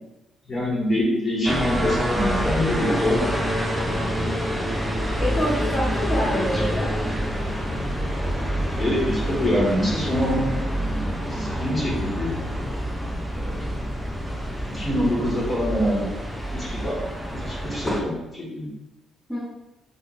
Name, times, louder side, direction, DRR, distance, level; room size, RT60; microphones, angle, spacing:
voice 1, 0.5-3.4 3.7-4.1 6.3-6.6 8.8-10.5 10.9-12.3 13.3-13.7 14.7-16.1 16.5-17.0 17.3-18.7, left 1 dB, 35° left, -6 dB, 1.3 m, -25 dB
sound 1, 1.5-18.0, equal, 5° right, 0.5 m, -27 dB
voice 2, 5.2-6.9 19.3-19.4, equal, 15° left, -10 dB, 1.0 m, -26 dB
3.8 x 2.4 x 2.5 m, 0.97 s
cardioid pair, 90°, 0 cm